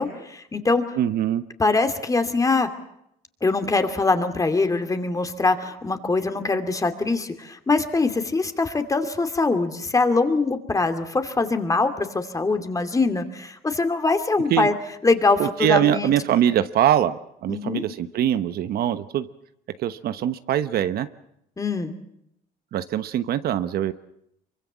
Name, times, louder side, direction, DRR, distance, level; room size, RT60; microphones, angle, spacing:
voice 1, 0.0-0.8 1.6-2.7 3.4-14.7 15.0-16.1 17.5-17.8 21.6-21.9, left 3 dB, 20° left, 8 dB, 2.6 m, -23 dB
voice 2, 1.0-1.4 14.5-14.7 15.4-19.3 19.8-21.1 22.7-23.9, right 11 dB, 65° right, 12 dB, 1.1 m, -23 dB
25.0 x 23.5 x 7.4 m, 0.78 s
cardioid pair, 110°, 17 cm